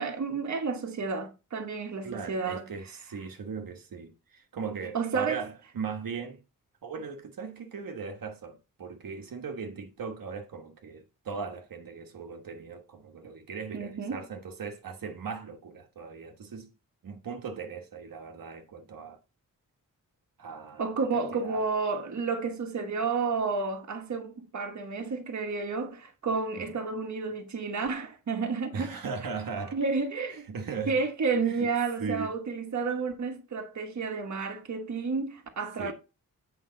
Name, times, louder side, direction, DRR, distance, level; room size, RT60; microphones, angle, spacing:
voice 1, 0.0-2.7 4.9-5.4 13.7-14.2 20.8-28.9 29.7-30.5 30.9-35.9, right 4 dB, 55° right, 1.2 m, -31 dB
voice 2, 2.0-6.4 6.8-16.7 17.0-19.2 20.4-21.6 26.6-26.7 28.7-29.8 30.5-31.0 31.4-31.7 32.0-32.3 35.8-35.9, right 5 dB, 80° right, 1.3 m, -38 dB
8.4 x 5.2 x 3.8 m
wide cardioid pair, 165°, 33 cm